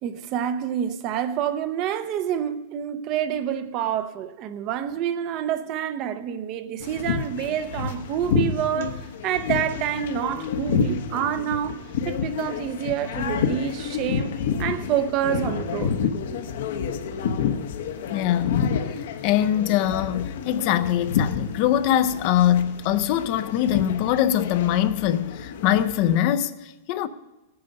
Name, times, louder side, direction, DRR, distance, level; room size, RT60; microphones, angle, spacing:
voice 1, 0.0-14.3 14.6-16.0, right 10 dB, 35° right, 0.7 m, -27 dB
sound 1, 6.8-26.2, left 6 dB, 70° left, 1.1 m, -29 dB
voice 2, 18.1-18.7 19.0-27.1, left 11 dB, 40° left, 0.6 m, -23 dB
17.0 x 9.6 x 5.3 m
supercardioid pair, 160°, 0 cm